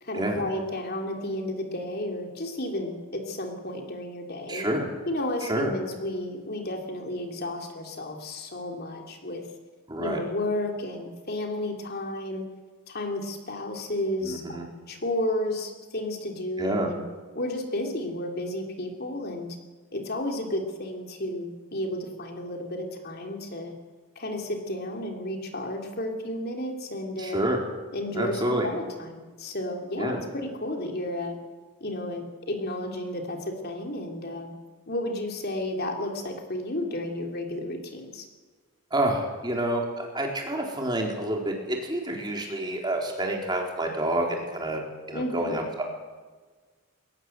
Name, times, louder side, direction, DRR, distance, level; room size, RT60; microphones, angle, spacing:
voice 1, 0.0-4.7 5.1-9.4 10.0-12.4 12.9-17.0 17.3-19.6 19.9-23.7 24.1-27.4 27.9-31.4 31.8-34.5 34.9-38.2 45.1-45.5, left 1 dB, 45° left, 2 dB, 3.3 m, -32 dB
voice 2, 4.5-4.8 5.4-5.7 9.9-10.2 14.2-14.7 16.6-16.9 27.2-27.6 28.1-28.7 30.0-30.2 38.9-44.8 45.1-45.8, right 1 dB, 20° right, 0 dB, 4.0 m, -28 dB
22.0 x 19.0 x 8.0 m, 1.4 s
head